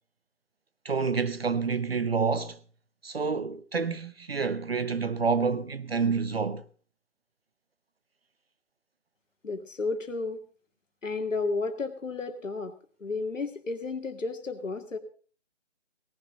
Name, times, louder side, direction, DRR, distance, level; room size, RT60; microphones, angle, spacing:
voice 1, 0.8-2.6 3.0-6.6, right 5 dB, 50° right, 0.9 m, -28 dB
voice 2, 9.4-10.4 11.0-12.7 13.0-15.0, left 3 dB, 85° left, 2.3 m, -32 dB
18.0 x 11.0 x 4.0 m
hypercardioid pair, 175°, 37 cm